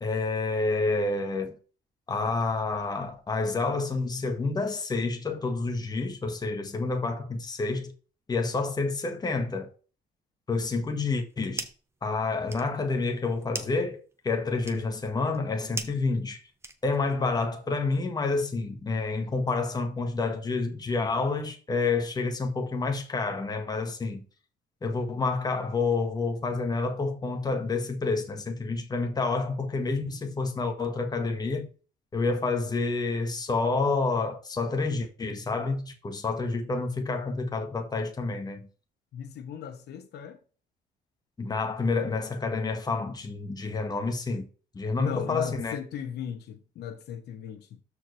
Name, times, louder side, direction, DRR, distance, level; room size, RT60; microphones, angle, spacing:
voice 1, 0.0-1.5 2.1-7.9 8.3-9.7 10.5-11.7 12.0-16.4 16.8-24.2 24.8-31.7 32.1-38.7 41.4-44.5 44.7-45.8, left 3 dB, 25° left, 1.6 m, -29 dB
sound 1, 11.1-11.9 12.3-17.2, right 3 dB, 15° right, 1.0 m, -41 dB
voice 2, 39.1-40.4 45.0-47.8, left 8 dB, 75° left, 1.2 m, -37 dB
13.0 x 4.7 x 3.3 m
cardioid pair, 135°, 17 cm